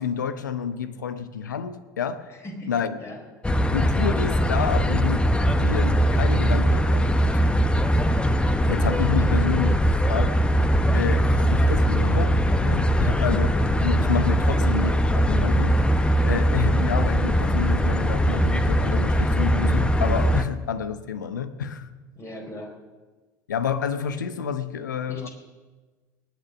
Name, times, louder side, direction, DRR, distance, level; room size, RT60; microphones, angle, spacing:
voice 1, 0.0-2.3 2.7-3.0 3.7-7.4 8.7-9.8 10.1-10.6 10.9-12.3 12.6-14.9 15.3-15.8 16.2-21.9 23.5-25.3, left 7 dB, 75° left, 13 dB, 0.9 m, -29 dB
voice 2, 2.3-3.2 9.2-9.6 14.4-14.9 22.2-22.7 25.1-25.3, left 1 dB, 25° left, 2 dB, 4.2 m, -38 dB
sound 1, 3.4-20.4, equal, 10° left, 0.9 m, -21 dB
19.5 x 9.2 x 6.2 m, 1.3 s
figure-of-eight pair, 70°, 10 cm